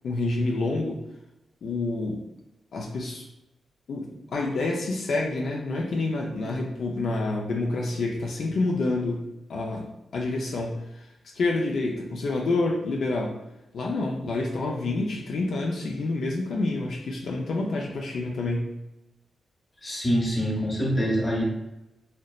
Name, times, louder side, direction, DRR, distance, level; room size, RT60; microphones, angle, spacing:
voice 1, 0.0-1.0 1.6-2.2 2.7-3.2 3.9-13.3 13.7-18.7, left 2 dB, 75° left, -1 dB, 0.4 m, -28 dB
voice 2, 19.8-21.4, equal, 25° left, -2 dB, 0.8 m, -25 dB
2.8 x 2.0 x 2.3 m, 0.93 s
cardioid pair, 75°, 0 cm